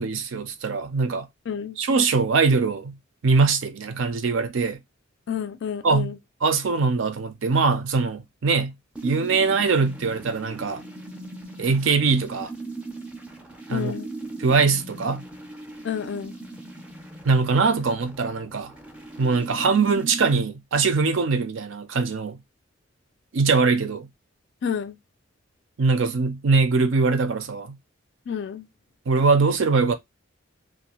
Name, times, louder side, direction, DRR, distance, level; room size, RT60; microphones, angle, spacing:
voice 1, 0.0-1.3 1.8-2.9 3.2-4.8 5.8-6.1 6.4-8.7 9.0-10.8 11.6-12.5 13.7-13.9 14.4-15.2 17.3-18.7 19.2-22.4 23.3-24.1 25.8-27.8 29.1-29.9, right 4 dB, 70° right, 0.5 m, -22 dB
voice 2, 1.5-1.8 5.3-6.2 13.7-14.1 15.8-16.3 24.6-25.0 28.3-28.7, left 8 dB, 60° left, 0.4 m, -29 dB
sound 1, 8.9-20.4, right 2 dB, 5° right, 0.4 m, -39 dB
2.5 x 2.3 x 2.9 m
head